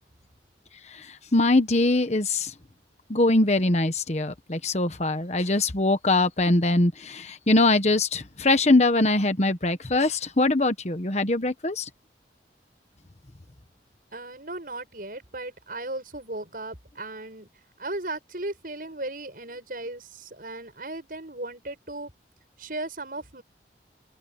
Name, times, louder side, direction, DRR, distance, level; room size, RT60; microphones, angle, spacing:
voice 1, 1.3-2.5 3.1-11.8, left 2 dB, 40° left, 1.3 m, -22 dB
voice 2, 14.1-17.5 17.8-22.1 22.6-23.4, right 2 dB, 50° right, 7.6 m, -36 dB
open air
head